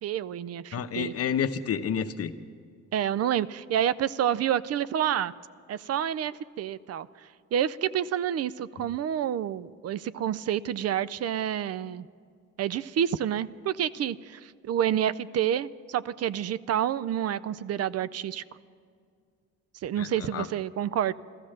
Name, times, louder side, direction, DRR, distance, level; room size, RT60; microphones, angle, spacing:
voice 1, 0.0-1.1 2.9-5.3 5.7-7.1 7.5-12.1 12.6-18.4 19.8-21.1, right 10 dB, 55° right, 17 dB, 0.5 m, -28 dB
voice 2, 0.7-2.3 8.8-8.9 20.0-20.5, left 7 dB, 55° left, 10 dB, 0.8 m, -30 dB
14.5 x 13.5 x 6.5 m, 2.2 s
cardioid pair, 90°, 30 cm